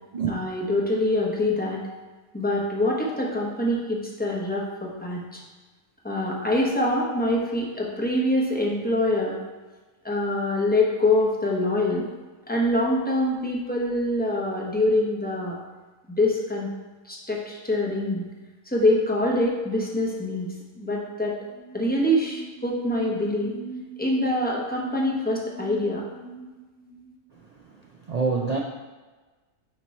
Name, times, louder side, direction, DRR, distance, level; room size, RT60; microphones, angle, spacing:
voice 1, 0.3-1.8 2.3-5.4 6.0-9.4 10.0-12.1 12.5-15.6 16.1-16.7 17.1-18.3 18.7-21.3 21.7-23.5 24.0-26.0, left 1 dB, 10° left, -3 dB, 0.9 m, -25 dB
sound 1, 21.0-21.1 21.4-27.1, right 3 dB, 45° right, 1.5 m, -41 dB
voice 2, 27.4-28.6, right 5 dB, 85° right, 0 dB, 0.3 m, -27 dB
9.0 x 3.0 x 4.2 m, 1.3 s
omnidirectional pair, 1.4 m